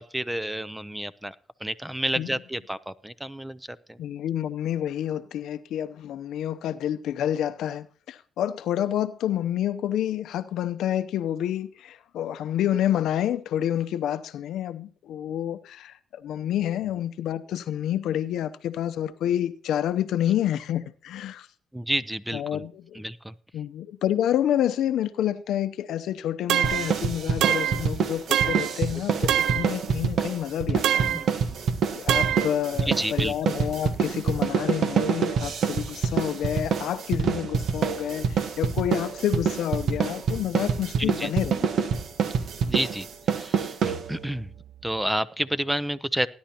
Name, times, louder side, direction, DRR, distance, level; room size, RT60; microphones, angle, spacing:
voice 1, 0.0-1.3 1.6-3.6 21.7-22.6 23.0-23.3 29.2-29.3 31.0-31.3 32.9-33.3 41.0-41.3 42.6-43.1 43.3-44.5 44.8-46.3, right 1 dB, 5° right, 0.6 m, -30 dB
voice 2, 4.0-21.5 22.3-23.0 23.5-31.0 32.0-41.9, left 11 dB, 80° left, 0.7 m, -28 dB
sound 1, 26.5-26.9 27.4-27.9 28.3-28.8 29.3-29.7 30.8-31.3 32.1-32.5, right 10 dB, 85° right, 0.5 m, -24 dB
sound 2, 26.6-44.4, right 6 dB, 65° right, 1.2 m, -26 dB
18.5 x 10.5 x 2.9 m
cardioid pair, 90°, 0 cm